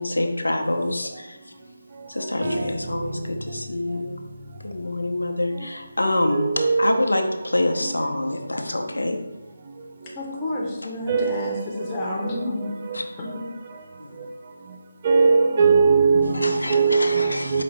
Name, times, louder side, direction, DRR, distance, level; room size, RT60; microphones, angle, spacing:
voice 1, 0.0-1.5 2.1-4.2 4.6-9.2 12.9-13.0 14.0-14.2 16.3-17.6, left 1 dB, 75° left, 0.5 m, -26 dB
voice 2, 6.0-7.0 7.7-7.9 11.1-11.7 12.2-13.0 13.3-13.4 15.0-17.6, right 5 dB, 30° right, 0.4 m, -21 dB
voice 3, 10.1-12.8 13.2-13.5, left 1 dB, 20° left, 0.6 m, -30 dB
4.9 x 2.5 x 3.2 m
figure-of-eight pair, 155°, 0 cm